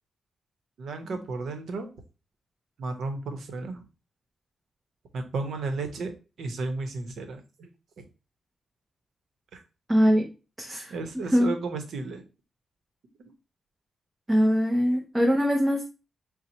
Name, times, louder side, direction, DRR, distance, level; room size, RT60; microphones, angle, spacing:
voice 1, 0.8-1.9 2.8-3.8 5.1-6.1 6.4-7.7 8.0-8.1 9.5-9.6 10.9-12.2, right 3 dB, 80° right, 6 dB, 0.8 m, -33 dB
voice 2, 9.9-10.3 10.6-11.5 14.3-15.8, equal, 15° right, 3 dB, 0.5 m, -23 dB
4.3 x 2.1 x 3.9 m, 0.31 s
wide cardioid pair, 120°, 0 cm